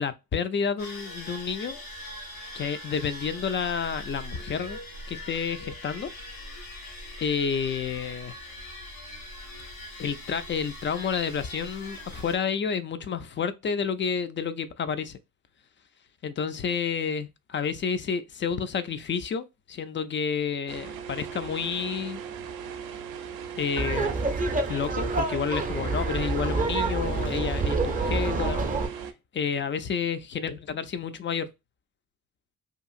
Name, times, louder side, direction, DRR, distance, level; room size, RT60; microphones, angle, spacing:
voice 1, 0.0-1.8 2.5-4.8 5.1-6.1 7.2-8.4 10.0-15.2 16.2-22.2 23.6-24.1 24.7-28.7 29.3-31.5, left 6 dB, 30° left, 0.4 m, -30 dB
sound 1, 0.8-12.3, left 1 dB, 85° left, 1.5 m, -41 dB
sound 2, 20.7-29.1, right 7 dB, 65° right, 0.5 m, -38 dB
Laughter, 23.8-28.9, right 3 dB, 20° right, 0.5 m, -27 dB
2.8 x 2.4 x 2.4 m
hypercardioid pair, 45°, 39 cm